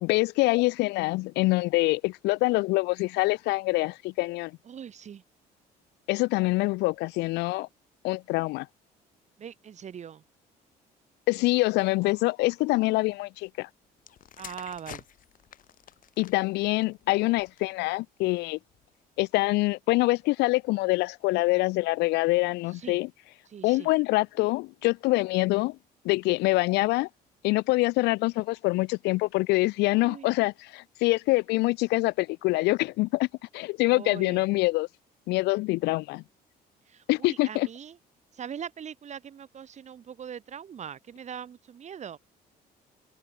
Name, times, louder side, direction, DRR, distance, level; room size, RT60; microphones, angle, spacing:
voice 1, 0.0-4.5 6.1-7.7 8.0-8.7 11.3-13.7 16.2-18.6 19.2-23.1 23.6-25.8 26.0-27.1 27.4-33.3 33.5-34.9 35.3-36.2 37.1-37.7, left 22 dB, 85° left, 0.5 m, -25 dB
voice 2, 4.7-5.2 9.4-10.2 14.4-15.0 22.7-23.0 23.5-23.9 29.9-30.3 33.9-34.4 36.9-38.0 38.3-42.2, right 8 dB, 45° right, 2.2 m, -41 dB
sound 1, 14.0-17.8 18.6-18.9, left 11 dB, 55° left, 1.3 m, -49 dB
open air
cardioid pair, 110°, 17 cm